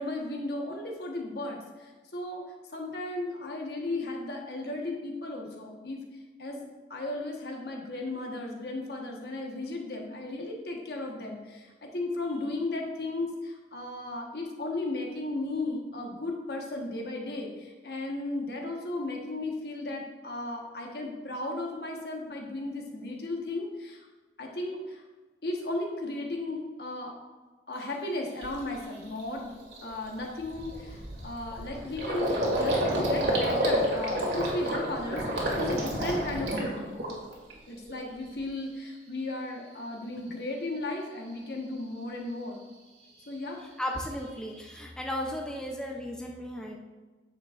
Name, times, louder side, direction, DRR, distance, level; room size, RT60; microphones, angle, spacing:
voice 1, 0.0-2.4 2.7-6.0 6.4-24.0 24.4-25.0 25.4-27.1 27.7-29.5 29.8-36.9 37.7-42.6 43.3-43.6, left 2 dB, 60° left, 0 dB, 1.3 m, -35 dB
Gurgling, 27.8-27.9 28.4-28.7 29.0-29.2 29.5-37.5 37.8-38.5, right 1 dB, 80° right, 2.1 m, -30 dB
voice 2, 43.6-46.8, equal, 5° left, 0 dB, 0.6 m, -35 dB
9.1 x 7.1 x 2.5 m, 1.3 s
head